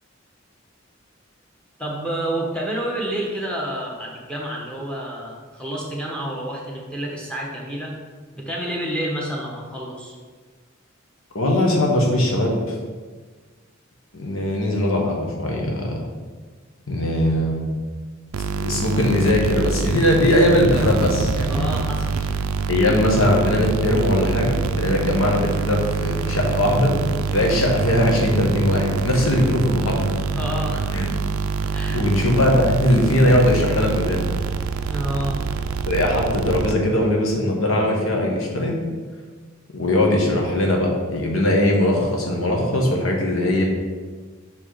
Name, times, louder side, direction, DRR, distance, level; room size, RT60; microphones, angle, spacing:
voice 1, 1.8-7.9 8.3-10.2 21.5-22.5 30.3-30.8 31.7-32.0 34.9-35.4, right 1 dB, 5° left, -2 dB, 1.1 m, -29 dB
voice 2, 11.3-12.7 14.1-16.0 16.9-17.6 18.6-21.7 22.7-26.9 27.3-30.1 30.9-31.1 31.9-34.3 35.9-38.8 39.7-43.6, left 1 dB, 80° left, 0 dB, 1.2 m, -20 dB
sound 1, 18.3-37.1, right 5 dB, 90° right, 0.4 m, -25 dB
5.9 x 4.7 x 4.0 m, 1.5 s
head